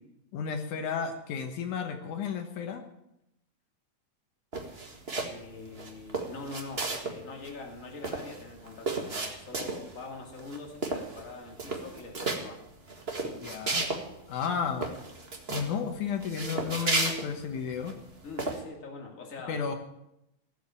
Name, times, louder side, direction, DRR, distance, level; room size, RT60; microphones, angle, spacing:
voice 1, 0.3-2.8 13.2-13.9 14.3-14.9 15.5-17.9 19.5-19.8, left 6 dB, 75° left, 6 dB, 2.6 m, -33 dB
sound 1, 4.5-5.4 5.8-7.2 7.4-7.5 7.8-10.0 10.4-10.6 10.8-11.3 11.5-12.4 12.9-14.0 14.4-14.5 14.8-15.7 16.2-17.9 18.4-18.6, right 3 dB, 25° right, 1.4 m, -33 dB
voice 2, 5.2-12.6 18.2-19.6, left 3 dB, 25° left, 1 dB, 2.6 m, -43 dB
17.0 x 7.7 x 8.8 m, 0.85 s
omnidirectional pair, 3.5 m